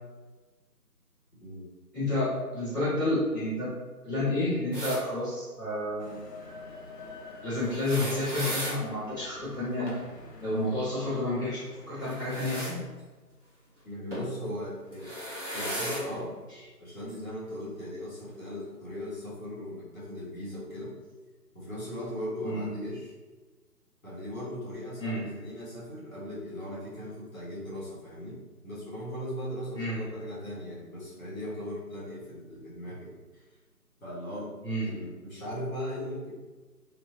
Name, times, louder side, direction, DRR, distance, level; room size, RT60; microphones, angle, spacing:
voice 1, 1.9-3.7 4.0-6.1 7.4-10.0 10.4-12.8 22.4-22.7 25.0-25.3 29.7-30.0 34.6-34.9, left 1 dB, 10° left, -20 dB, 1.2 m, -30 dB
sound 1, 4.7-5.0 7.6-8.8 12.0-12.7 14.1-14.3 14.9-16.0 17.1-17.2 18.4-18.5, equal, 50° right, 0.9 m, -35 dB
sound 2, 6.0-12.8, left 2 dB, 80° left, 0.8 m, -47 dB
voice 2, 13.8-15.2 15.5-16.3 16.8-20.9 21.5-23.1 24.0-33.4 34.0-34.5 34.8-36.3, equal, 55° left, -7 dB, 1.3 m, -38 dB
3.0 x 2.7 x 2.4 m, 1.3 s
figure-of-eight pair, 165°, 48 cm